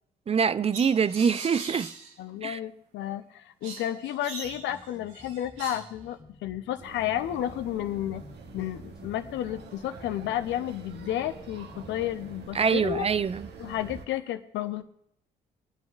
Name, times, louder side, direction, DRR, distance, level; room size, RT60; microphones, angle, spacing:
voice 1, 0.3-1.9 2.4-2.6 12.5-13.4, right 6 dB, 30° right, 0.4 m, -24 dB
sound 1, 0.7-2.1 3.6-5.9, right 4 dB, 80° right, 1.2 m, -41 dB
voice 2, 2.2-8.2 8.5-13.1 13.6-14.8, left 12 dB, 65° left, 0.7 m, -32 dB
sound 2, 4.4-12.5, left 2 dB, 20° left, 1.3 m, -52 dB
sound 3, 6.8-14.1, right 5 dB, 60° right, 1.1 m, -45 dB
24.0 x 9.1 x 2.5 m
hypercardioid pair, 45°, 20 cm